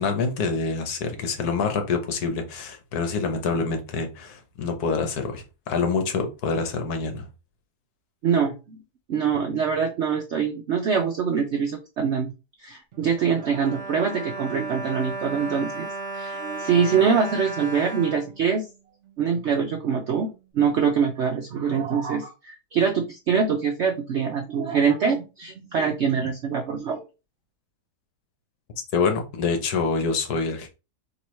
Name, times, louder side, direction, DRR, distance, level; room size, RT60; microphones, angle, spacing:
voice 1, 0.0-7.3 28.9-30.7, left 4 dB, 70° left, 1.3 m, -26 dB
voice 2, 8.2-8.8 9.1-12.3 12.6-15.9 16.1-18.7 19.2-20.3 20.5-27.0, right 6 dB, 70° right, 0.6 m, -24 dB
Bowed string instrument, 12.9-19.2 19.8-19.9 20.2-20.4, right 2 dB, 50° right, 1.2 m, -35 dB
4.4 x 3.0 x 3.1 m
omnidirectional pair, 1.8 m